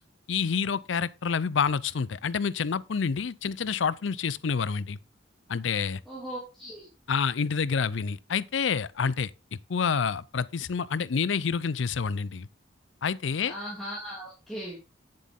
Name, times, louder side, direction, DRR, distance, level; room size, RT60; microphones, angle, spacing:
voice 1, 0.3-5.0 5.5-6.0 7.1-9.3 9.7-12.5 13.0-13.5, left 6 dB, 85° left, 0.5 m, -28 dB
voice 2, 6.1-6.9 13.4-14.8, equal, ahead, 2.9 m, -38 dB
9.4 x 7.7 x 3.7 m
head